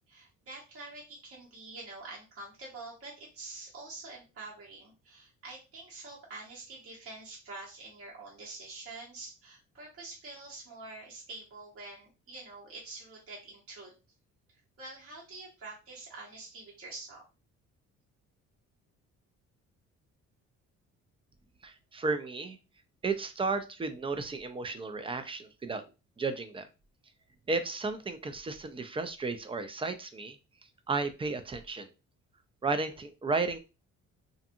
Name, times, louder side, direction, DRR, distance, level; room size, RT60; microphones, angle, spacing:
voice 1, 0.1-13.9 14.8-17.2, right 3 dB, 50° right, -4 dB, 1.2 m, -46 dB
voice 2, 21.6-22.6 23.0-25.8 26.2-26.7 27.5-30.4 30.9-31.9 32.6-33.6, right 3 dB, 20° right, 9 dB, 0.4 m, -33 dB
2.6 x 2.5 x 2.6 m, 0.30 s
cardioid pair, 90°, 30 cm